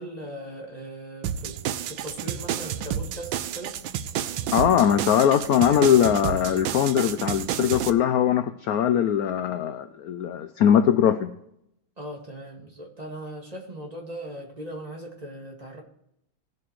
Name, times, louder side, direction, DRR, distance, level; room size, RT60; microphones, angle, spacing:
voice 1, 0.0-3.8 12.0-15.8, right 1 dB, 20° right, 0 dB, 1.9 m, -39 dB
sound 1, 1.2-7.9, right 9 dB, 80° right, 1.3 m, -30 dB
voice 2, 4.5-11.3, left 9 dB, 75° left, 10 dB, 0.8 m, -21 dB
18.0 x 7.7 x 3.1 m, 0.77 s
omnidirectional pair, 2.2 m